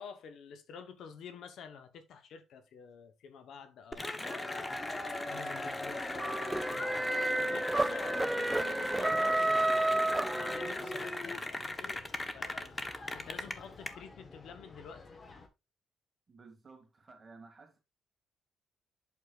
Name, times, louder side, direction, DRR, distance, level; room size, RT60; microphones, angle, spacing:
voice 1, 0.0-5.0 5.3-12.8 13.1-15.0, left 6 dB, 75° left, 1.0 m, -49 dB
Cheering / Applause, 3.9-13.9, left 2 dB, 20° left, 1.1 m, -38 dB
sound 1, 4.5-15.5, left 3 dB, 35° left, 1.4 m, -53 dB
sound 2, 6.2-11.0, right 2 dB, 15° right, 0.4 m, -31 dB
voice 2, 16.3-17.8, right 4 dB, 30° right, 2.4 m, -55 dB
8.3 x 6.6 x 2.5 m
cardioid pair, 90°, 0 cm